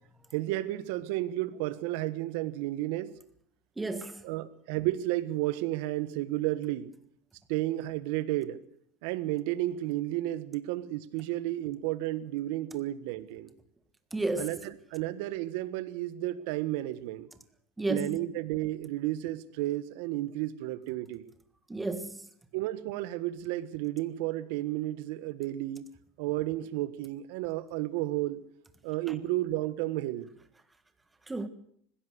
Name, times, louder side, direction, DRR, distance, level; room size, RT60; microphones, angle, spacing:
voice 1, 0.3-3.1 4.2-6.9 7.5-8.6 9.0-13.5 14.4-14.6 14.9-17.3 17.9-21.3 22.5-25.9 26.2-28.4 28.8-30.3, right 15 dB, 65° right, 1.4 m, -32 dB
voice 2, 3.8-4.2 14.1-14.5 17.8-18.2 21.7-22.2 29.1-29.2 31.3-31.5, right 2 dB, 10° right, 1.6 m, -32 dB
20.0 x 16.5 x 8.1 m
supercardioid pair, 155°, 0 cm